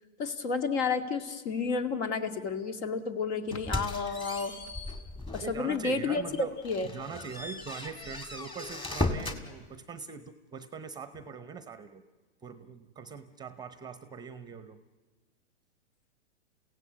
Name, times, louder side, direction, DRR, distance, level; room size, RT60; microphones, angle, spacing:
voice 1, 0.2-4.5 5.3-6.9, left 4 dB, 65° left, 7 dB, 2.3 m, -31 dB
sound 1, 3.5-5.6 6.1-6.2 6.6-9.4, left 2 dB, 15° left, 1.9 m, -36 dB
voice 2, 5.4-6.5 6.9-12.0 12.4-14.8, right 5 dB, 10° right, 12 dB, 0.7 m, -42 dB
29.0 x 16.5 x 8.1 m, 1.3 s
hypercardioid pair, 130°, 37 cm